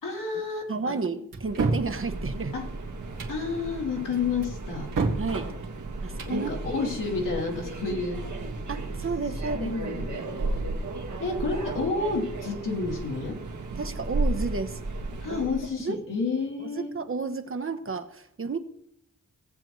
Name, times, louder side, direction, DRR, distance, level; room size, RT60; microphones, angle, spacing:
voice 1, 0.0-1.0 2.5-2.7 3.3-4.9 6.3-8.2 9.5-10.6 11.2-13.4 15.2-16.9, left 4 dB, 75° left, -2 dB, 2.9 m, -30 dB
voice 2, 0.7-2.6 5.2-5.5 6.0-6.5 8.7-9.7 13.8-14.8 15.3-15.5 15.8-16.0 16.6-18.6, right 4 dB, 40° right, 7 dB, 1.0 m, -32 dB
sound 1, 1.3-1.9 3.0-3.4 4.4-5.3 6.0-6.4, right 3 dB, 85° right, 1.8 m, -28 dB
Subway metro underground, 1.4-15.7, right 2 dB, 65° right, 1.6 m, -34 dB
17.5 x 7.6 x 3.1 m, 0.71 s
cardioid pair, 70°, 32 cm